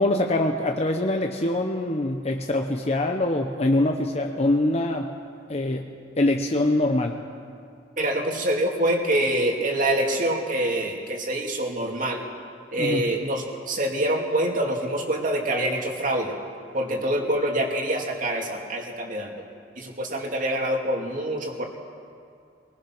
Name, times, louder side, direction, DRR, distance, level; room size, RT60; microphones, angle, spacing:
voice 1, 0.0-5.1 5.5-5.9 6.2-7.2 12.8-13.1, left 1 dB, 35° left, 3 dB, 0.9 m, -24 dB
voice 2, 8.0-12.3 12.7-16.3 16.7-19.4 19.8-21.7, right 1 dB, 45° right, 1 dB, 2.5 m, -25 dB
23.0 x 20.5 x 6.1 m, 2.3 s
head